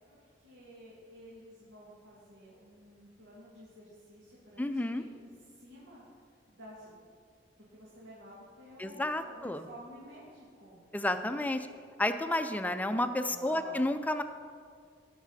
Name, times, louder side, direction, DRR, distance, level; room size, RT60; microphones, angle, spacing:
voice 1, 0.1-7.0 7.6-10.8 13.3-13.9, right 1 dB, 90° right, -8 dB, 2.3 m, -52 dB
voice 2, 4.6-5.0 8.8-9.7 10.9-11.7 12.0-14.2, left 1 dB, 10° left, 9 dB, 0.4 m, -31 dB
16.5 x 6.1 x 4.1 m, 2.1 s
head